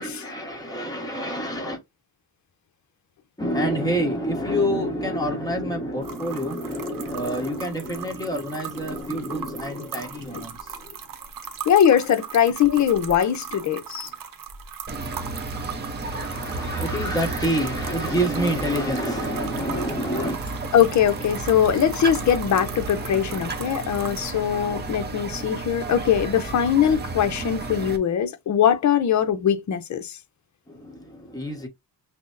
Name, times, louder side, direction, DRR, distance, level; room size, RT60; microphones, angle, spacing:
voice 1, 0.0-1.8 3.4-11.0 16.1-20.4 30.7-31.7, equal, 10° left, 1.2 m, -27 dB
sound 1, 6.0-24.3, right 8 dB, 55° right, 0.9 m, -39 dB
voice 2, 11.7-14.1 20.7-30.2, left 9 dB, 45° left, 0.6 m, -21 dB
sound 2, 14.9-28.0, right 3 dB, 25° right, 0.7 m, -32 dB
5.9 x 2.1 x 2.5 m
cardioid pair, 155°, 40 cm